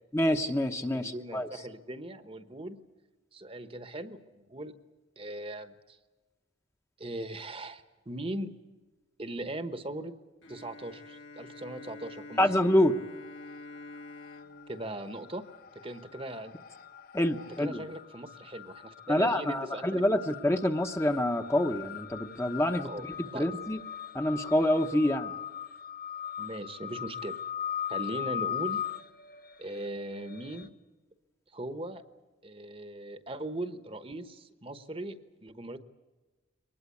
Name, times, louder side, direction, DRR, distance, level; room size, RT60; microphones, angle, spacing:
voice 1, 0.1-1.5 12.4-13.0 17.1-17.9 19.1-22.9 23.2-23.8 24.1-25.3, left 1 dB, 15° left, 5 dB, 0.9 m, -27 dB
voice 2, 0.9-2.8 3.3-4.7 5.2-6.0 7.0-8.5 9.2-10.1 10.5-12.5 14.7-15.4 15.8-16.5 17.6-20.2 22.8-23.0 23.3-23.5 26.4-27.4 27.9-28.8 29.6-30.7 31.5-32.0 32.4-35.8, right 1 dB, 30° right, 10 dB, 1.1 m, -39 dB
Bowed string instrument, 10.4-16.1, left 3 dB, 70° left, 2.1 m, -48 dB
sound 1, 13.1-13.8 14.1-30.7, left 9 dB, 45° left, 1.0 m, -40 dB
23.5 x 20.0 x 8.5 m, 1.2 s
head